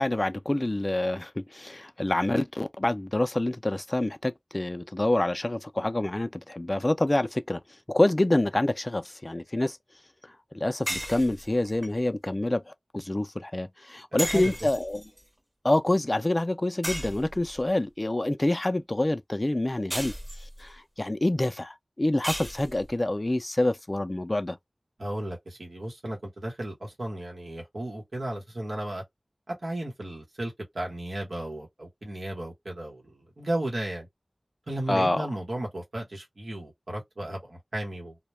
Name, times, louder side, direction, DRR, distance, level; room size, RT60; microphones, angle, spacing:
voice 1, 0.0-7.6 7.9-9.8 10.5-15.0 15.6-20.1 20.6-24.6 34.9-35.3, left 1 dB, 35° left, 0.3 m, -27 dB
sound 1, 10.9-11.9 14.2-15.2 16.8-17.7 19.9-20.7 22.2-23.0, equal, 20° right, 0.9 m, -35 dB
voice 2, 14.1-14.5 25.0-29.0 29.5-34.1 34.7-38.2, right 1 dB, 85° right, 1.1 m, -34 dB
2.2 x 2.2 x 3.0 m
wide cardioid pair, 50°, 0 cm